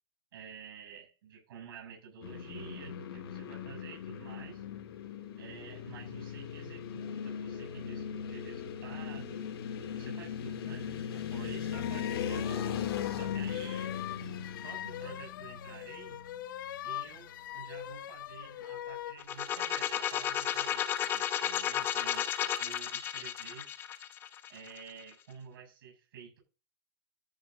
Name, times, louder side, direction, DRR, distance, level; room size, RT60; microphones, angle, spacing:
voice 1, 0.3-4.7 5.4-9.5 9.9-12.7 13.1-16.2 16.8-23.7 24.5-26.4, right 7 dB, 65° right, 1 dB, 7.3 m, -50 dB
sound 1, 2.2-16.4, left 8 dB, 70° left, 3.2 m, -38 dB
sound 2, 11.7-19.2, left 13 dB, 55° left, 1.0 m, -42 dB
sound 3, 19.2-25.0, left 10 dB, 15° left, 0.8 m, -33 dB
14.0 x 7.6 x 3.9 m, 0.31 s
supercardioid pair, 175°, 13 cm